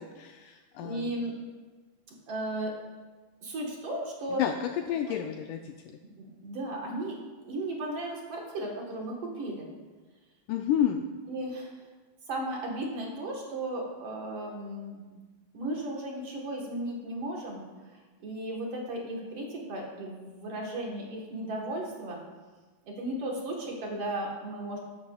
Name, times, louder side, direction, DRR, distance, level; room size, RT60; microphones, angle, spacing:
voice 1, 0.0-1.1 4.4-5.7 10.5-11.1, left 9 dB, 80° left, 4 dB, 1.9 m, -30 dB
voice 2, 0.8-1.3 2.3-2.7 3.4-4.4 5.0-5.1 6.0-7.2 7.4-9.7 11.3-11.7 12.3-15.2 15.5-17.7 18.2-22.2 22.8-24.8, right 1 dB, 55° right, -1 dB, 2.0 m, -35 dB
14.0 x 10.5 x 2.3 m, 1.3 s
omnidirectional pair, 3.9 m